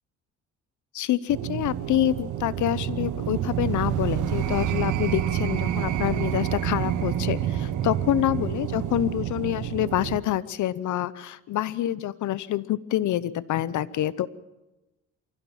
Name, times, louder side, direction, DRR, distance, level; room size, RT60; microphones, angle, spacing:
voice 1, 0.9-14.3, left 12 dB, 75° left, 19 dB, 1.0 m, -27 dB
sound 1, 1.3-10.2, right 11 dB, 85° right, 1.5 m, -28 dB
24.5 x 16.5 x 7.4 m, 1.0 s
cardioid pair, 90°, 30 cm